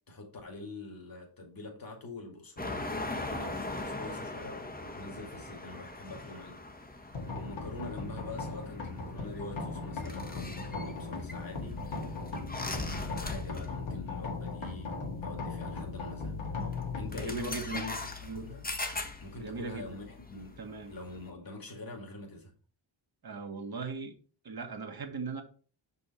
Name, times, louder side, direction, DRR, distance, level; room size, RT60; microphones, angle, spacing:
voice 1, 0.1-6.6 6.9-11.8 12.7-16.3 17.0-18.0 18.3-18.7 19.2-20.6 20.9-22.5, left 2 dB, 45° left, 2.4 m, -44 dB
sound 1, 2.6-13.9 14.1-14.4 15.5-15.6 16.6-16.8 17.1-21.3, left 2 dB, 20° left, 1.3 m, -41 dB
sound 2, 7.1-21.0, left 3 dB, 65° left, 2.1 m, -39 dB
voice 2, 17.2-18.0 18.2-18.4 19.3-19.8 20.6-20.9 23.2-24.1 24.4-25.4, right 4 dB, 45° right, 1.6 m, -39 dB
6.2 x 5.5 x 4.2 m
cardioid pair, 70°, 49 cm